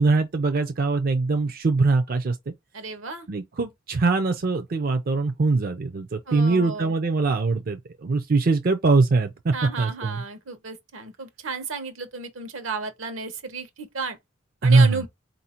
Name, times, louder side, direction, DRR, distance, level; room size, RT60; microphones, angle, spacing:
voice 1, 0.0-2.5 3.3-10.2 14.6-15.0, right 3 dB, 45° right, 0.5 m, -22 dB
voice 2, 2.7-3.3 6.3-6.9 9.5-14.2 14.6-15.1, right 4 dB, 80° right, 1.0 m, -33 dB
4.2 x 2.7 x 4.3 m
head